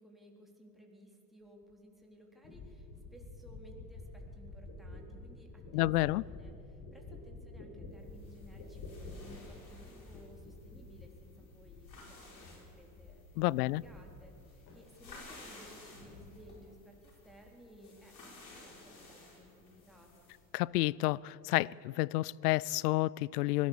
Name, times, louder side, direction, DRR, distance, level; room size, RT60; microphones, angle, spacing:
voice 1, 0.0-20.3, equal, ahead, 3.8 m, -58 dB
sound 1, 1.7-1.8 2.4-12.1 12.4-13.3 13.6-14.4 14.7-15.2, left 2 dB, 50° left, 6.4 m, -49 dB
voice 2, 5.7-6.2 13.4-13.8 20.5-23.7, left 19 dB, 70° left, 0.5 m, -30 dB
sound 2, 8.0-20.5, left 2 dB, 85° left, 4.6 m, -55 dB
24.0 x 18.0 x 7.2 m
figure-of-eight pair, 70°, 50 cm